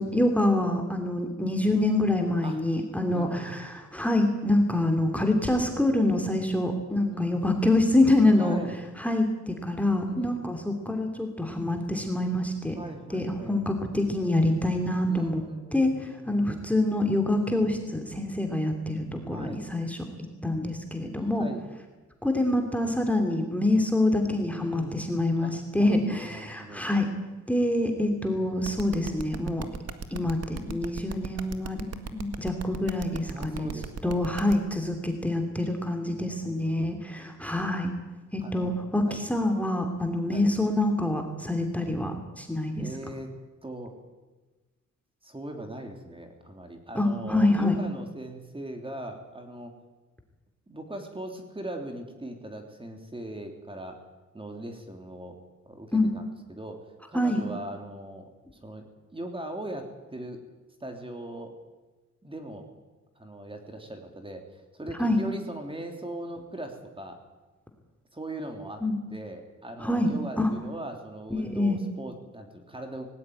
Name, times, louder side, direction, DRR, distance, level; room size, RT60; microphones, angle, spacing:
voice 1, 0.0-8.6 9.0-12.8 13.1-15.4 15.7-20.0 20.4-21.4 22.2-27.1 27.5-29.7 30.1-31.9 32.1-33.7 34.0-37.9 38.3-42.9 46.9-47.8 55.9-56.1 57.1-57.4 65.0-65.2 68.8-69.0 69.8-70.5 71.3-71.8, left 1 dB, 5° left, 3 dB, 2.9 m, -26 dB
voice 2, 3.1-3.6 7.1-7.4 8.4-8.8 10.2-10.5 12.7-13.6 15.1-16.6 19.3-19.6 21.4-21.6 24.5-25.1 25.4-26.9 33.3-34.3 36.1-36.9 38.4-39.2 40.3-40.5 42.8-43.3 43.6-43.9 45.2-49.7 50.7-54.0 54.3-55.4 55.6-56.2 56.5-58.8 59.1-60.4 60.8-61.6 62.2-62.7 63.1-67.2 68.1-68.8 69.1-73.1, right 1 dB, 20° right, 4 dB, 3.3 m, -40 dB
sound 1, 28.6-34.5, right 5 dB, 55° right, 1.9 m, -36 dB
19.0 x 17.0 x 9.6 m, 1.2 s
cardioid pair, 95°, 30 cm